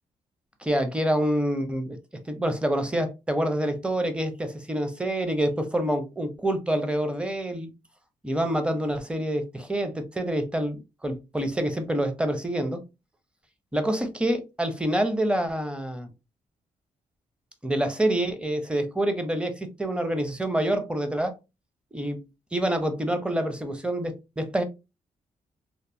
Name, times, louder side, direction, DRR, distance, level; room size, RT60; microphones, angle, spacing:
voice 1, 0.6-2.0 2.3-7.7 8.2-12.8 13.7-16.1 17.6-21.3 21.9-22.2 22.5-24.6, right 1 dB, 5° right, 0.6 m, -27 dB
2.9 x 2.1 x 2.7 m
cardioid pair, 80°, 14 cm